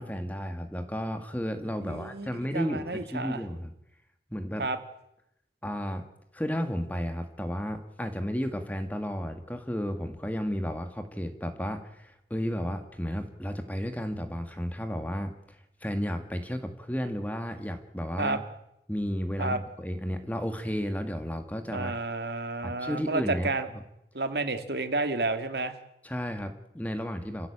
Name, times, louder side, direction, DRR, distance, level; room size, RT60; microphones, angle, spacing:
voice 1, 0.0-3.7 4.3-4.6 5.6-6.0 6.3-15.3 15.8-18.4 18.9-22.0 22.6-23.8 26.0-27.5, equal, 10° left, 7 dB, 1.9 m, -33 dB
voice 2, 1.8-3.4 4.6-4.8 18.2-18.4 19.4-19.6 21.7-23.7 24.1-25.7, right 2 dB, 70° right, 8 dB, 2.2 m, -30 dB
28.0 x 15.5 x 8.7 m, 0.83 s
head